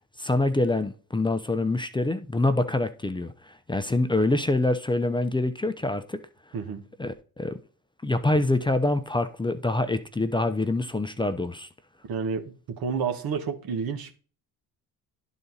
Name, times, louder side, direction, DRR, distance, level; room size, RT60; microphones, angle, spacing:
voice 1, 0.2-6.2 7.0-7.6 8.0-11.7, left 2 dB, 10° left, 0.7 m, -25 dB
voice 2, 12.0-14.2, right 6 dB, 60° right, 1.5 m, -30 dB
11.0 x 4.1 x 4.0 m
supercardioid pair, 60°, 41 cm